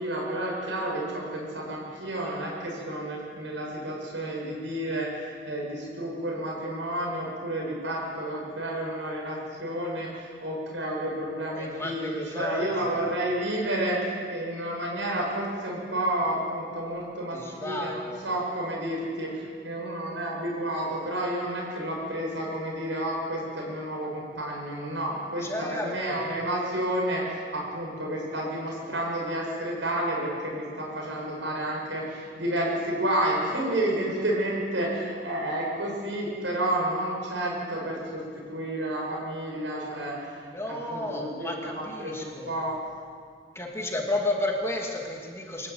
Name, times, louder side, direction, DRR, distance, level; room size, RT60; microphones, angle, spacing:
voice 1, 0.0-38.2 38.5-40.4 40.7-42.8, right 1 dB, 85° right, -2 dB, 7.8 m, -30 dB
voice 2, 11.5-13.0 17.3-18.2 25.4-26.3 40.5-42.5 43.5-45.7, left 1 dB, 15° left, 0 dB, 2.6 m, -32 dB
24.0 x 14.5 x 9.6 m, 2.1 s
head